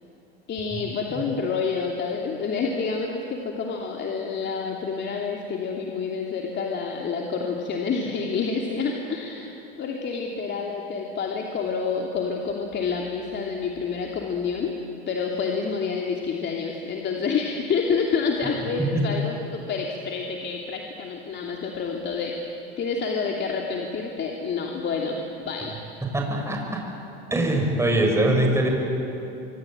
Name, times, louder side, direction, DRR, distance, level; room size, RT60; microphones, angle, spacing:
voice 1, 0.5-14.7 15.1-25.7, left 5 dB, 35° left, 1 dB, 3.0 m, -28 dB
voice 2, 26.1-26.8 27.3-28.7, right 1 dB, 10° right, 1 dB, 6.8 m, -22 dB
25.5 x 23.5 x 9.0 m, 2.8 s
hypercardioid pair, 95°, 30 cm